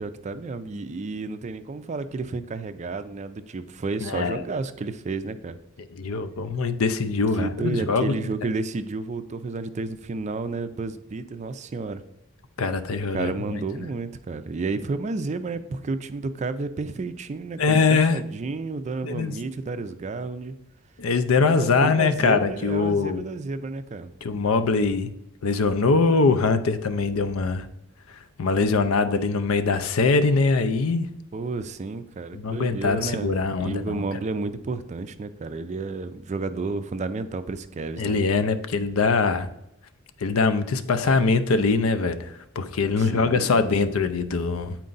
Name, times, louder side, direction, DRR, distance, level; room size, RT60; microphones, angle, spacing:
voice 1, 0.0-5.6 7.4-12.0 13.1-20.5 21.4-24.1 31.3-33.3 33.6-38.2 43.0-43.5, right 3 dB, 35° right, 11 dB, 0.4 m, -31 dB
voice 2, 4.0-4.4 6.0-8.1 12.6-13.6 17.6-18.2 19.0-19.4 21.0-23.2 24.2-25.1 25.4-27.7 28.4-31.1 32.3-34.0 38.0-39.5 40.2-44.8, left 4 dB, 75° left, 11 dB, 0.5 m, -22 dB
8.5 x 4.4 x 3.9 m, 0.85 s
head